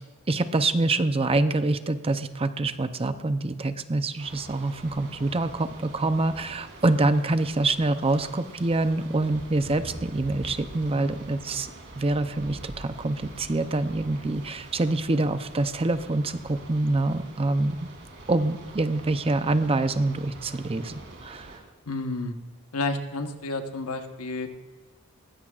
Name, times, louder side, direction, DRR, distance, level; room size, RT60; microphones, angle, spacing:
voice 1, 0.3-11.7 11.9-17.9 18.3-20.9 21.2-21.6, right 2 dB, 25° right, 10 dB, 0.6 m, -26 dB
sound 1, 4.2-21.6, right 2 dB, 50° right, 3.4 m, -45 dB
voice 2, 21.9-22.3 22.7-24.5, left 2 dB, 75° left, 6 dB, 1.2 m, -30 dB
20.0 x 16.0 x 2.5 m, 1.2 s
head